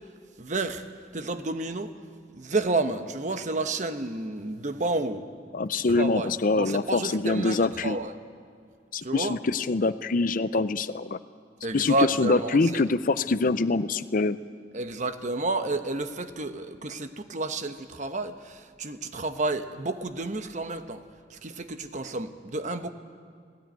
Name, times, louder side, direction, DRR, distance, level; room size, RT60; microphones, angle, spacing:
voice 1, 0.4-0.8 1.1-1.9 2.4-5.3 5.7-6.3 6.6-8.1 9.0-9.4 11.6-12.6 14.7-21.0 21.3-22.9, right 2 dB, 45° right, 9 dB, 1.0 m, -30 dB
voice 2, 5.5-8.0 8.9-11.2 11.7-14.4, left 3 dB, 50° left, 13 dB, 0.5 m, -25 dB
18.5 x 17.5 x 9.3 m, 2.2 s
head